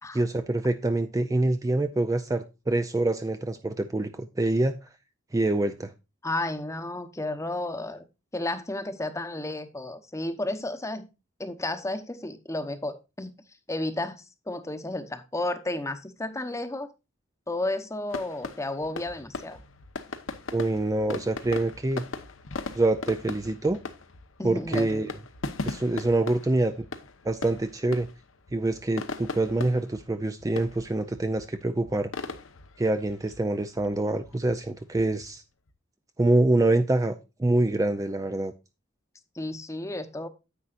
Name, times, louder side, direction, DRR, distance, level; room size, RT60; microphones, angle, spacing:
voice 1, 0.1-4.7 5.3-5.9 20.5-22.0 22.7-23.8 24.4-25.1 25.6-26.9 27.2-28.1 28.5-32.1 32.8-35.4 36.2-38.5, right 2 dB, 15° right, 0.4 m, -25 dB
voice 2, 6.2-8.0 8.3-11.1 11.4-13.3 13.7-16.9 17.5-19.6 24.4-25.1 39.4-40.3, left 2 dB, 15° left, 0.9 m, -32 dB
sound 1, 18.1-35.7, left 3 dB, 85° left, 1.0 m, -39 dB
9.8 x 8.0 x 2.5 m
head